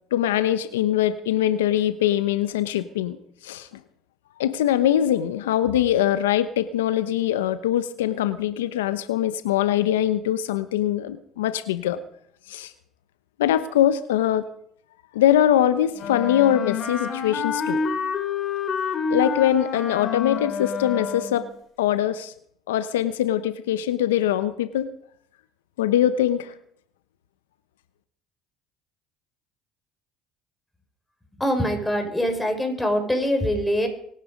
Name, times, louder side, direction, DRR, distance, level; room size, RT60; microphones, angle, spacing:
voice 1, 0.1-3.2 3.4-3.7 4.4-12.0 12.5-12.7 13.4-14.4 15.1-17.8 19.1-21.5 21.8-22.3 22.7-24.9 25.8-26.5, left 11 dB, 85° left, 12 dB, 0.9 m, -22 dB
Wind instrument woodwind instrument, 15.9-21.5, left 5 dB, 50° left, 3.3 m, -28 dB
voice 2, 31.4-33.9, equal, 10° left, 4 dB, 5.8 m, -23 dB
24.5 x 9.9 x 5.3 m, 0.68 s
hypercardioid pair, 65°, 0 cm